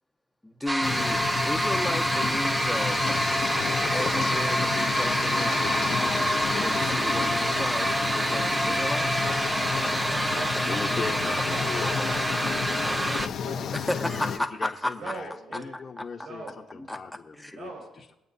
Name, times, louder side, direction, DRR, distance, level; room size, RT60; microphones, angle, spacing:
voice 1, 0.4-1.2 1.4-3.0 3.9-5.6 6.6-9.2 13.7-14.9 15.7-16.0 16.9-17.0 17.4-17.6, left 1 dB, 5° left, 6 dB, 1.0 m, -33 dB
sound 1, 0.7-13.3, right 1 dB, 10° right, 0.7 m, -26 dB
sound 2, 0.8-14.4, left 7 dB, 60° left, 1.0 m, -32 dB
voice 2, 10.0-10.9 11.5-12.1 12.7-14.1 15.0-15.7 16.1-16.9 17.5-17.8, right 3 dB, 65° right, -2 dB, 5.0 m, -42 dB
voice 3, 10.6-12.0 14.2-18.1, left 4 dB, 35° left, -1 dB, 1.1 m, -39 dB
23.0 x 8.6 x 2.8 m, 0.91 s
cardioid pair, 110°, 0 cm